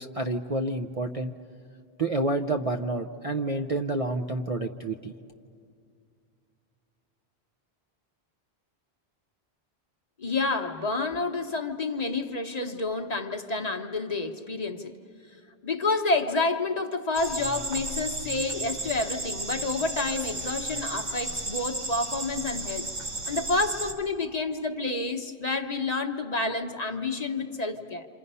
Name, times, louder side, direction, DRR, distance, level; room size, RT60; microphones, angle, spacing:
voice 1, 0.0-1.3 2.0-5.1, right 2 dB, 40° right, 4 dB, 0.6 m, -29 dB
voice 2, 10.2-15.0 15.6-22.9 23.3-28.1, left 3 dB, 40° left, 4 dB, 1.0 m, -29 dB
sound 1, 17.1-23.9, right 2 dB, 55° right, 1.7 m, -34 dB
27.5 x 27.0 x 5.5 m, 2.3 s
omnidirectional pair, 1.1 m